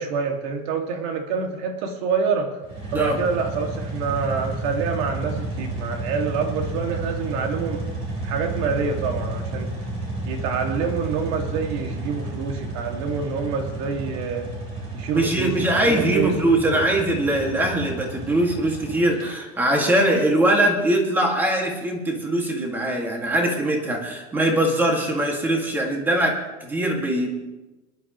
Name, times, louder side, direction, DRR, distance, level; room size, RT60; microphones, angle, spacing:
voice 1, 0.0-2.5 2.9-7.8 8.2-9.7 10.3-14.5 14.9-16.8, right 5 dB, 60° right, 3 dB, 2.2 m, -26 dB
sound 1, 2.6-19.3, right 2 dB, 35° right, 4.3 m, -31 dB
voice 2, 15.1-27.3, right 1 dB, 10° right, 1 dB, 2.1 m, -22 dB
23.0 x 11.5 x 3.1 m, 1.1 s
cardioid pair, 165°, 18 cm